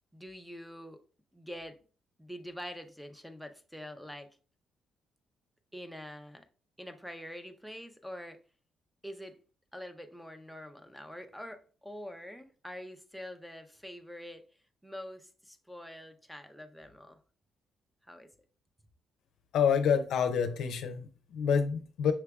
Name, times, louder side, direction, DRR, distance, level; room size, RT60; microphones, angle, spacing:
voice 1, 0.1-1.0 1.3-1.8 2.2-4.4 5.7-6.4 6.8-8.4 9.0-9.4 9.7-14.4 14.8-17.2 18.1-18.3, equal, ahead, 0.5 m, -45 dB
voice 2, 19.5-22.1, left 7 dB, 75° left, 0.5 m, -28 dB
5.8 x 3.2 x 2.3 m
cardioid pair, 90°, 0 cm